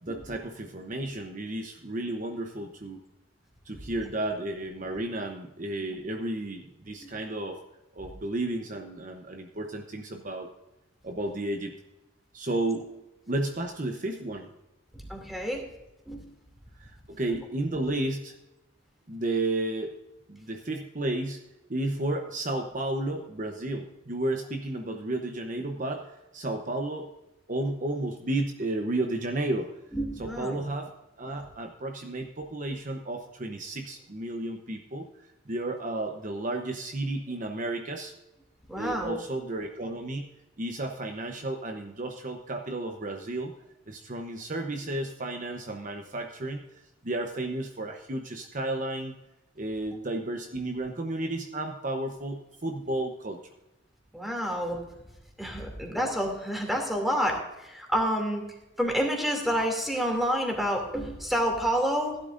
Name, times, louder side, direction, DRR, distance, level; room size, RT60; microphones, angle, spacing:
voice 1, 0.0-3.0 3.6-7.6 7.9-10.5 11.0-11.7 12.3-12.9 13.3-14.5 16.8-18.4 19.1-20.0 20.3-21.4 21.7-27.1 27.5-29.7 30.2-38.1 38.7-40.3 40.6-43.5 43.9-46.6 47.0-49.1 49.6-53.4, right 2 dB, 40° right, 4 dB, 0.9 m, -32 dB
voice 2, 15.1-15.6 16.1-16.2 29.9-30.6 38.7-39.2 54.1-54.8 55.4-58.4 58.8-62.2, equal, ahead, 1 dB, 2.7 m, -28 dB
16.0 x 11.5 x 2.6 m, 0.95 s
head